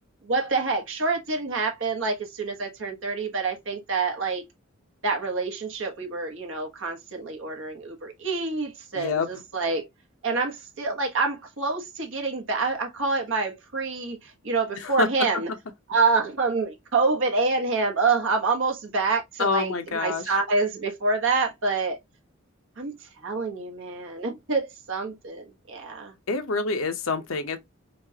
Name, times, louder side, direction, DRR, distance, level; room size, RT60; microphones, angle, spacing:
voice 1, 0.2-4.4 5.0-9.9 10.2-15.5 15.9-22.0 22.8-26.1, right 4 dB, 70° right, 1.3 m, -27 dB
voice 2, 8.9-9.3 14.8-15.1 19.4-20.3 26.3-27.6, left 4 dB, 80° left, 0.9 m, -26 dB
5.3 x 2.5 x 2.8 m
head